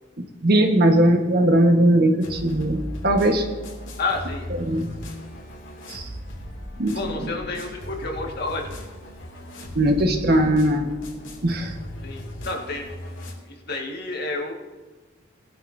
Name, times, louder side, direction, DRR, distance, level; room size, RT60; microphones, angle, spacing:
voice 1, 0.4-2.8 3.0-3.5 4.6-4.9 5.9-6.1 6.8-7.3 9.7-10.9 11.4-11.7, right 1 dB, 55° right, 4 dB, 1.3 m, -19 dB
sound 1, 2.2-13.3, equal, 75° left, 2.5 m, -37 dB
voice 2, 4.0-4.5 6.9-8.7 12.0-12.9 13.4-14.5, left 3 dB, 55° left, 1 dB, 1.8 m, -30 dB
19.0 x 11.5 x 2.7 m, 1.3 s
head